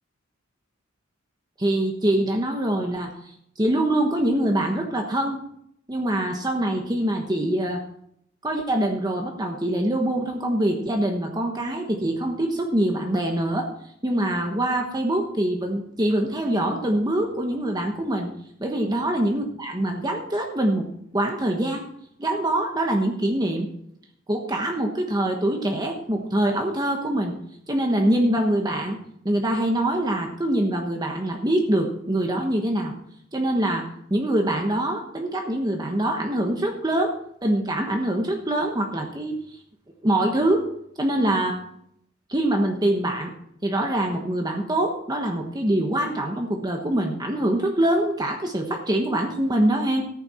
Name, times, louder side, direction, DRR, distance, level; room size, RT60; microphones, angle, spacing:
voice 1, 1.6-3.1 3.6-5.4 5.9-7.8 8.4-13.7 14.0-18.3 18.6-20.8 21.1-21.8 22.2-23.7 24.3-27.3 27.7-29.0 29.2-32.9 33.3-37.1 37.4-39.3 40.0-40.6 41.0-41.6 42.3-43.3 43.6-50.0, right 1 dB, 20° right, 2 dB, 1.2 m, -24 dB
14.5 x 9.0 x 4.4 m, 0.72 s
head